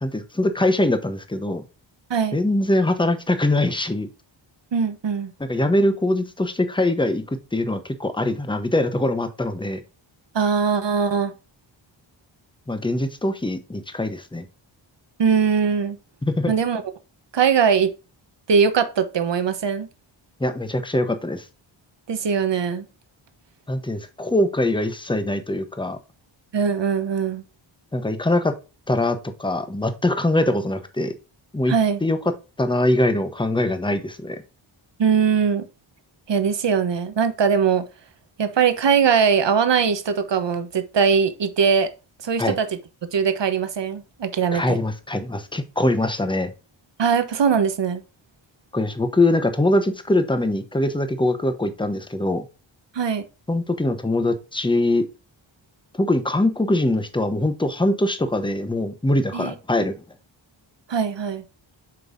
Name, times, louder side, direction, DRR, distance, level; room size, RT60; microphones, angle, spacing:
voice 1, 0.0-1.6 2.3-4.1 5.4-7.2 7.5-9.8 12.7-14.5 16.3-16.5 20.4-21.4 23.7-26.0 27.9-28.6 28.9-31.1 31.5-31.7 32.0-32.2 32.6-34.4 42.4-42.6 44.5-46.5 48.7-52.5 53.5-55.1 56.0-60.0, left 1 dB, 10° left, 0.9 m, -22 dB
voice 2, 4.7-5.3 10.3-11.3 15.2-16.0 16.5-16.8 17.3-17.9 18.5-19.9 22.1-22.9 26.5-27.4 31.7-32.0 35.0-35.6 36.3-37.8 38.4-41.9 42.2-42.7 43.1-44.8 47.0-48.0 52.9-53.2 59.3-59.5 60.9-61.4, right 6 dB, 60° right, 1.1 m, -21 dB
7.8 x 5.4 x 2.6 m
wide cardioid pair, 100°, 48 cm